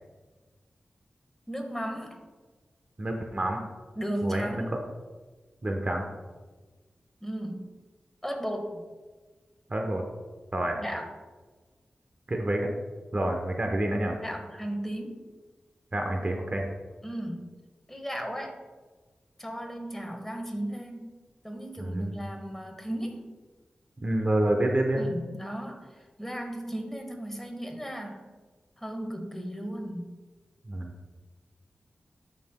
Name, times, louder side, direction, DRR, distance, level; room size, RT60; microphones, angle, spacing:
voice 1, 1.5-2.2 3.9-4.7 7.2-7.7 8.2-8.8 10.8-11.1 14.2-15.3 17.0-17.5 17.9-18.6 19.4-21.1 21.4-23.3 24.9-28.3 28.8-30.2, equal, 10° left, 3 dB, 1.4 m, -35 dB
voice 2, 3.0-3.6 4.2-4.6 5.6-6.1 9.7-10.0 10.5-10.8 12.3-12.7 13.1-14.2 15.9-16.6 21.8-22.2 24.0-25.0 30.6-30.9, right 1 dB, 40° right, 2 dB, 0.9 m, -28 dB
13.0 x 5.8 x 2.2 m, 1.3 s
cardioid pair, 60°, 3 cm